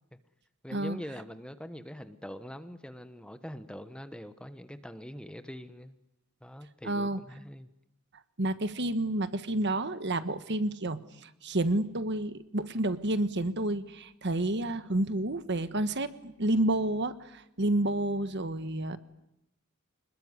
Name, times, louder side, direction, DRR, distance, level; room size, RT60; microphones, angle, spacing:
voice 1, 0.6-6.0 6.4-7.7, equal, 5° left, 10 dB, 1.2 m, -43 dB
voice 2, 6.8-7.2 8.4-19.0, right 1 dB, 55° right, 12 dB, 1.4 m, -30 dB
26.0 x 21.0 x 9.8 m, 0.85 s
head